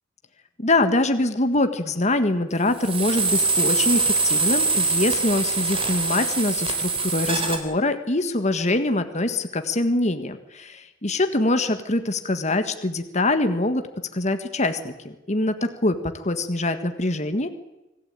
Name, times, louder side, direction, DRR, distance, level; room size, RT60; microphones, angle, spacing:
voice 1, 0.6-13.8 14.1-17.5, left 2 dB, 35° left, 8 dB, 1.6 m, -24 dB
sound 1, 2.8-7.6, right 3 dB, 30° right, 3.7 m, -23 dB
25.5 x 16.0 x 9.1 m, 1.0 s
head